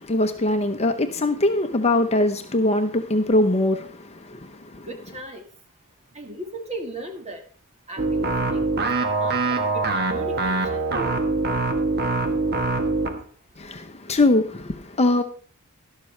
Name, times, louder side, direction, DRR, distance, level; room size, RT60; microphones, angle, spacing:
voice 1, 0.0-4.9 13.6-15.2, left 2 dB, 30° left, 0.8 m, -22 dB
voice 2, 4.9-5.4 6.1-7.4 7.9-8.6 9.0-10.8, right 1 dB, 30° right, 1.6 m, -37 dB
sound 1, 8.0-13.2, right 3 dB, 45° right, 1.2 m, -24 dB
12.0 x 12.0 x 3.2 m
head